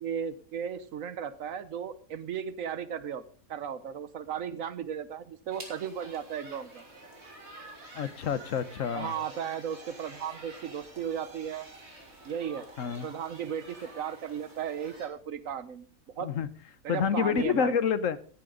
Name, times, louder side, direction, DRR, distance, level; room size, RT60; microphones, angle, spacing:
voice 1, 0.0-3.2 3.5-6.8 8.9-11.7 12.2-12.7 13.0-15.9 16.2-16.3 16.8-17.7, right 8 dB, 70° right, 1.3 m, -35 dB
sound 1, 5.5-15.1, right 2 dB, 50° right, 3.3 m, -48 dB
voice 2, 7.9-9.1 12.8-13.1 16.2-16.5 16.9-18.2, left 7 dB, 70° left, 1.2 m, -28 dB
15.5 x 11.0 x 3.8 m
omnidirectional pair, 1.5 m